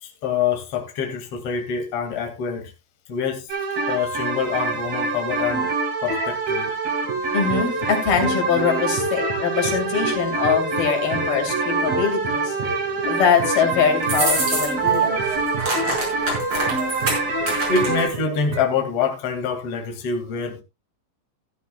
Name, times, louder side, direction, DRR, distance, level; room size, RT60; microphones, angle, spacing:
voice 1, 0.0-2.7 3.1-3.5 3.9-5.7 6.0-6.7 17.7-20.6, left 6 dB, 45° left, 4 dB, 2.9 m, -25 dB
sound 1, 3.5-18.1, right 3 dB, 75° right, 6.0 m, -25 dB
sound 2, 7.0-18.8, right 2 dB, 55° right, 4.5 m, -32 dB
voice 2, 7.3-12.5 13.1-15.2, left 6 dB, 85° left, 4 dB, 4.6 m, -22 dB
sound 3, 14.0-15.0 15.2-18.2, right 2 dB, 35° right, 5.7 m, -26 dB
14.0 x 13.5 x 2.2 m, 0.24 s
omnidirectional pair, 4.2 m